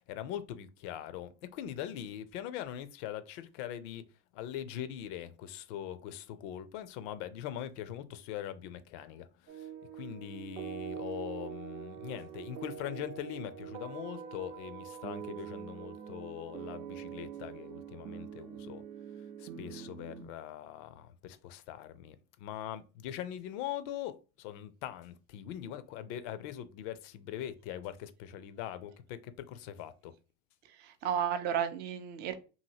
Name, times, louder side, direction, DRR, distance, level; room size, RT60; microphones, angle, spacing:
voice 1, 0.0-4.0 4.3-18.8 19.2-30.1, left 11 dB, 55° left, 0.5 m, -42 dB
sound 1, 9.5-20.2, right 9 dB, 80° right, 0.7 m, -44 dB
voice 2, 30.6-32.3, right 9 dB, 25° right, 0.3 m, -33 dB
2.8 x 2.6 x 2.7 m
hypercardioid pair, 95°, 44 cm